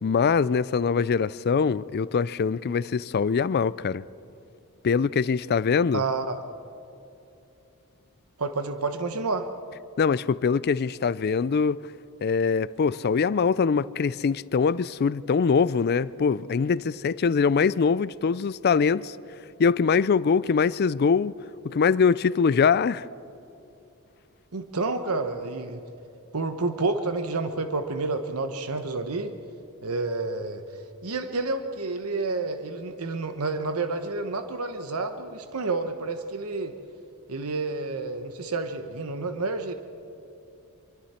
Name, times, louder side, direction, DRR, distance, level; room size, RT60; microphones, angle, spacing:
voice 1, 0.0-4.0 4.8-6.0 10.0-11.8 12.2-19.2 19.6-21.3 21.6-23.1, left 5 dB, 45° left, 0.4 m, -23 dB
voice 2, 5.9-6.4 8.4-9.5 24.5-25.8 26.3-29.3 29.8-30.6 31.0-36.7 37.3-39.7, right 3 dB, 80° right, 1.0 m, -29 dB
25.5 x 24.0 x 4.4 m
head